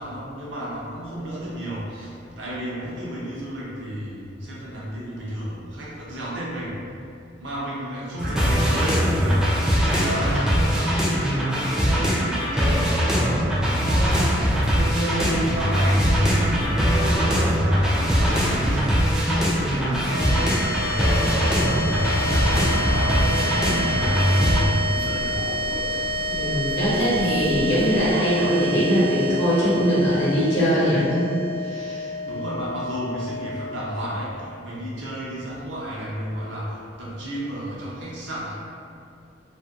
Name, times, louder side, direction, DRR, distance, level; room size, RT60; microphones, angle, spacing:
voice 1, 0.0-7.0 7.4-16.1 16.7-25.4 32.2-38.5, right 1 dB, 70° right, -6 dB, 0.6 m, -32 dB
sound 1, 8.2-24.6, equal, 5° right, 0.3 m, -21 dB
sound 2, 14.0-28.1, equal, 85° right, 1.0 m, -35 dB
sound 3, 20.0-34.5, left 1 dB, 85° left, 0.6 m, -29 dB
voice 2, 26.3-31.3 31.6-32.0, equal, 65° left, -9 dB, 0.9 m, -21 dB
2.5 x 2.2 x 2.3 m, 2.4 s
head